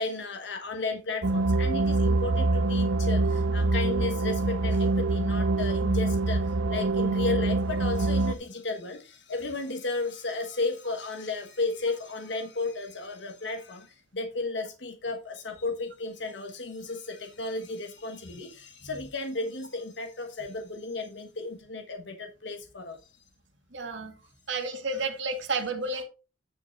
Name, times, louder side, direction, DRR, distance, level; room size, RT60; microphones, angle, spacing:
voice 1, 0.0-23.0, left 3 dB, 65° left, 5 dB, 1.3 m, -34 dB
sound 1, 1.2-8.3, right 2 dB, 85° right, 0.7 m, -25 dB
voice 2, 23.7-24.1 24.5-26.0, right 3 dB, 65° right, 4 dB, 2.0 m, -31 dB
9.8 x 5.2 x 4.5 m, 0.32 s
head